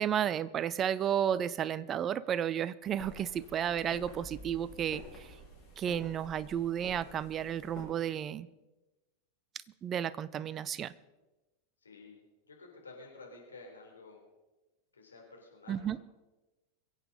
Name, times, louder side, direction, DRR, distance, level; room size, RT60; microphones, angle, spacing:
voice 1, 0.0-5.3 5.8-8.5 9.8-10.9 15.7-16.0, right 9 dB, 25° right, 18 dB, 0.5 m, -32 dB
sound 1, 2.8-7.8, left 1 dB, 20° left, 6.5 m, -50 dB
voice 2, 11.8-14.2 14.9-16.1, left 3 dB, 75° left, 0 dB, 3.7 m, -52 dB
23.0 x 8.1 x 5.3 m, 1.1 s
figure-of-eight pair, 90°, 0 cm